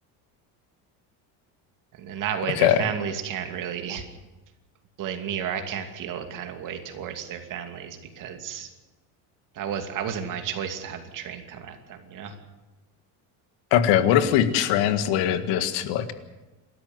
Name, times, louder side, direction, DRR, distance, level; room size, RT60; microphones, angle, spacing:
voice 1, 2.0-4.0 5.0-8.7 9.5-12.3, right 8 dB, 45° right, 6 dB, 2.7 m, -32 dB
voice 2, 13.7-16.1, left 10 dB, 80° left, 10 dB, 2.0 m, -21 dB
28.5 x 13.5 x 7.9 m, 1.1 s
cardioid pair, 170°, 42 cm